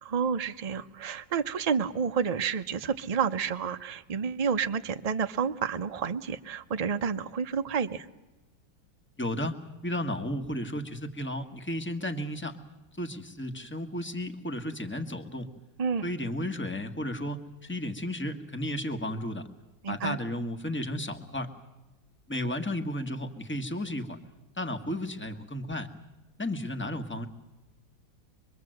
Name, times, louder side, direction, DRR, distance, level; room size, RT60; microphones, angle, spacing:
voice 1, 0.0-8.1 15.8-16.0 19.8-20.2, right 6 dB, 40° right, 7 dB, 0.5 m, -30 dB
voice 2, 9.2-12.6 12.9-15.5 16.0-19.5 19.9-21.5 22.3-24.2 24.6-25.9 26.4-27.3, left 1 dB, 5° left, 6 dB, 1.3 m, -33 dB
25.0 x 23.0 x 7.8 m, 1.1 s
omnidirectional pair, 2.0 m